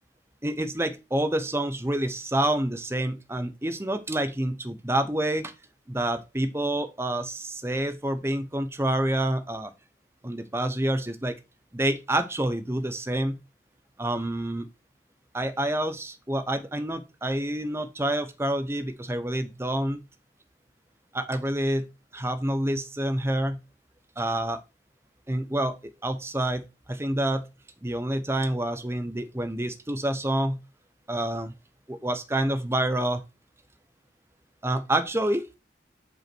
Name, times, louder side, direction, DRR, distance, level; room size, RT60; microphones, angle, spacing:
voice 1, 0.4-5.5 5.9-9.7 10.2-11.4 11.7-13.4 14.0-14.7 15.3-20.0 21.1-21.9 22.1-23.6 24.2-24.6 25.3-25.8 26.0-26.6 26.9-27.4 27.8-30.6 31.1-31.5 31.9-33.2 34.6-35.4, right 1 dB, 15° right, 10 dB, 0.8 m, -27 dB
8.0 x 4.8 x 4.5 m, 0.26 s
head